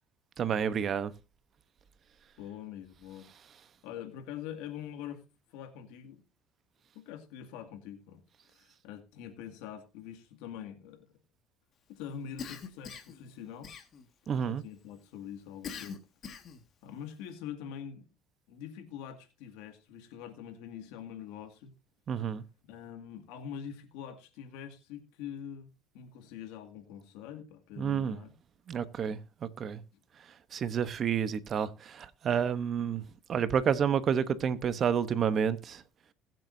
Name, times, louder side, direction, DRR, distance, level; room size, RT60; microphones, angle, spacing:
voice 1, 0.4-1.1 14.3-14.6 22.1-22.4 27.8-28.2 28.7-29.8 30.5-35.8, right 7 dB, 40° right, 0.9 m, -30 dB
voice 2, 2.4-3.3 3.8-5.2 5.5-6.2 6.9-8.2 8.5-11.1 11.9-13.7 14.3-16.0 16.8-18.1 18.5-21.7 22.7-28.3 29.9-30.0, left 9 dB, 90° left, 2.1 m, -44 dB
Cough, 12.4-13.2 13.6-14.3 15.6-16.7, left 6 dB, 40° left, 1.8 m, -42 dB
20.5 x 7.6 x 2.7 m
cardioid pair, 125°, 0 cm